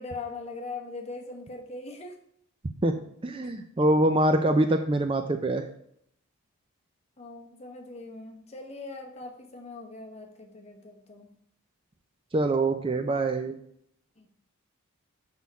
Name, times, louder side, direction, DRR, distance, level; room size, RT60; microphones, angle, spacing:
voice 1, 0.0-2.1 3.9-4.0 7.2-11.3 14.2-14.3, left 3 dB, 30° left, 2 dB, 1.0 m, -41 dB
voice 2, 3.2-5.6 12.3-13.6, right 1 dB, 25° right, 7 dB, 0.4 m, -24 dB
6.3 x 5.5 x 4.7 m, 0.69 s
head